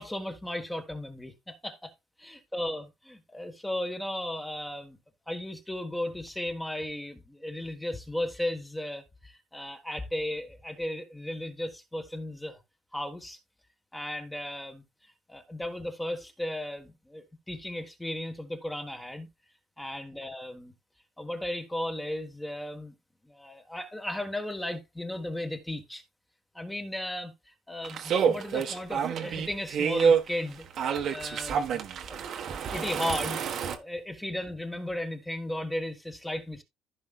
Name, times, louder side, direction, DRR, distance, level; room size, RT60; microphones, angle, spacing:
voice 1, 0.0-1.9 2.2-5.0 5.3-12.6 12.9-13.4 13.9-14.8 15.3-19.3 19.8-20.7 21.2-22.9 23.2-26.0 26.5-30.6 31.1-31.8 32.1-32.3 32.7-33.4 33.7-36.6, left 1 dB, 5° left, 1.4 m, -35 dB
sound 1, 27.8-33.8, right 7 dB, 50° right, 1.2 m, -28 dB
15.0 x 5.4 x 2.4 m
cardioid pair, 160°, 0 cm